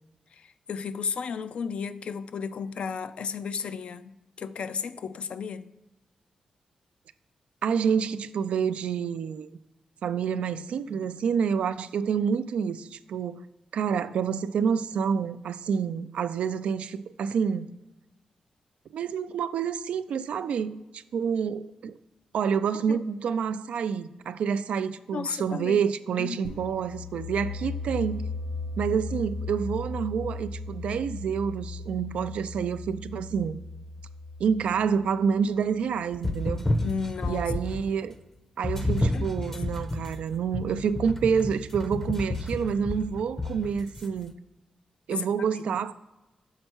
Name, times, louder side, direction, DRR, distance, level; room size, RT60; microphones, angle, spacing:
voice 1, 0.3-5.7 22.9-23.0 25.1-25.8 26.2-26.5 36.8-37.5 39.1-39.6 45.1-45.8, left 6 dB, 65° left, 0.4 m, -34 dB
voice 2, 7.6-9.5 10.0-13.4 13.7-17.7 18.9-21.9 22.3-28.3 28.8-33.6 34.4-36.6 37.3-38.1 38.6-44.3 45.1-45.9, right 7 dB, 80° right, 0.3 m, -28 dB
sound 1, 26.4-36.0, left 3 dB, 85° left, 0.9 m, -37 dB
sound 2, 36.1-37.9 38.6-44.1, left 2 dB, 15° left, 0.6 m, -30 dB
6.5 x 4.4 x 4.4 m
cardioid pair, 95°, 2 cm